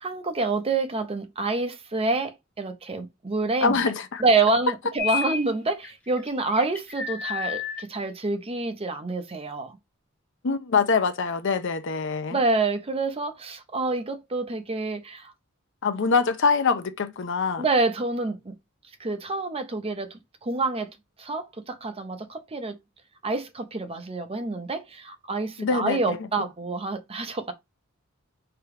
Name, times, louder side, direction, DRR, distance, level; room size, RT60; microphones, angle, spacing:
voice 1, 0.0-3.8 4.2-9.8 12.3-15.3 17.6-18.5 19.0-20.1 20.4-22.8 23.2-27.5, right 3 dB, 30° right, 0.6 m, -27 dB
voice 2, 3.6-4.2 10.4-12.4 15.8-17.6 25.6-26.2, left 5 dB, 60° left, 0.6 m, -24 dB
sound 1, 5.0-5.5 5.8-7.8, left 7 dB, 5° left, 0.8 m, -31 dB
3.4 x 2.8 x 4.7 m
head